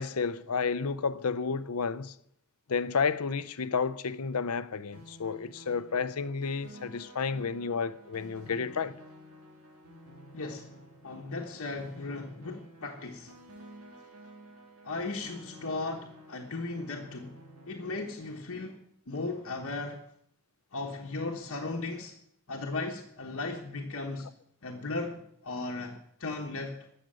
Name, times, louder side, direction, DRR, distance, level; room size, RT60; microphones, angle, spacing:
voice 1, 0.0-2.1 2.7-9.0, left 5 dB, 80° left, 0.7 m, -31 dB
sound 1, 4.9-18.4, equal, 80° right, 2.9 m, -52 dB
voice 2, 10.3-10.8 11.0-13.3 14.8-17.3 17.7-18.8 19.1-20.0 20.7-22.1 22.5-24.3 24.6-26.9, left 3 dB, 65° left, 1.3 m, -36 dB
14.0 x 6.7 x 8.9 m
head